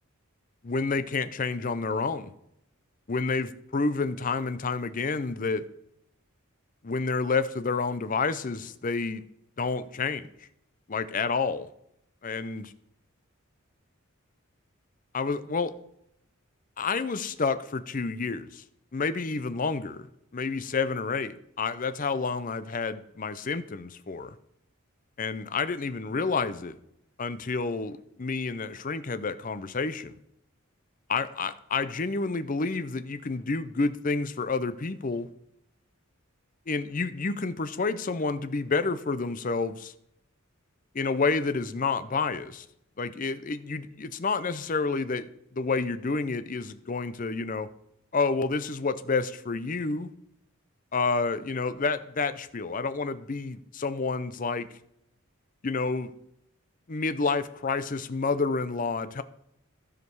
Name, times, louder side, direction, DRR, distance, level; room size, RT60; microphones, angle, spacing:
voice 1, 0.6-2.3 3.1-5.6 6.8-9.2 9.6-10.2 10.9-11.7 12.2-12.7 15.1-15.7 16.8-18.6 18.9-20.1 20.3-24.4 25.2-26.8 27.2-30.2 31.1-35.3 36.7-39.9 40.9-42.7 43.0-45.3 45.5-47.7 48.1-50.1 50.9-54.7 55.6-56.1 56.9-59.2, left 4 dB, 40° left, 12 dB, 0.6 m, -29 dB
15.0 x 5.1 x 4.7 m, 0.77 s
head